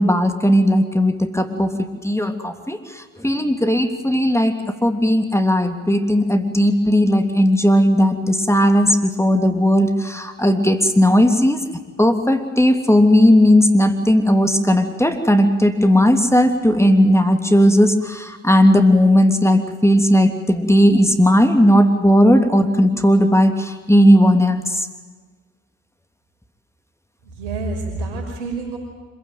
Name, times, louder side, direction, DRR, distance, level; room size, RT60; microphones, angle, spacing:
voice 1, 0.0-4.5 4.8-11.6 12.0-24.9, equal, 5° left, 6 dB, 3.0 m, -16 dB
voice 2, 27.2-28.8, right 3 dB, 80° right, 2 dB, 5.8 m, -28 dB
26.0 x 16.0 x 9.4 m, 1.4 s
hypercardioid pair, 45°, 40 cm